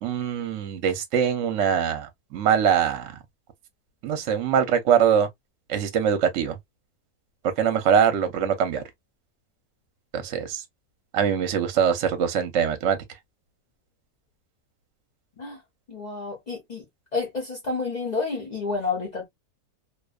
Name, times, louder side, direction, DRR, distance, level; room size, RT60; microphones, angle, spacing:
voice 1, 0.0-3.1 4.0-5.3 5.7-6.6 7.6-8.8 10.1-10.6 11.1-13.0, right 8 dB, 65° right, 0.9 m, -23 dB
voice 2, 15.9-16.8 17.1-19.3, left 4 dB, 85° left, 0.3 m, -30 dB
2.6 x 2.1 x 2.3 m
omnidirectional pair, 1.6 m